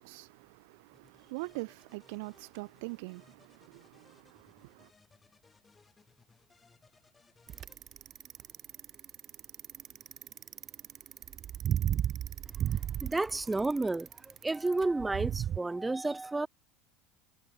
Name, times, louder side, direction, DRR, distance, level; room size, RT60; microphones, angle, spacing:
voice 1, 0.0-4.9, right 28 dB, 80° right, 0.3 m, -44 dB
sound 1, 0.9-7.8, left 4 dB, 15° left, 6.8 m, -65 dB
Bicycle, 7.5-15.6, right 10 dB, 35° right, 0.9 m, -34 dB
voice 2, 13.0-16.5, right 2 dB, 10° right, 0.7 m, -31 dB
supercardioid pair, 135°, 0 cm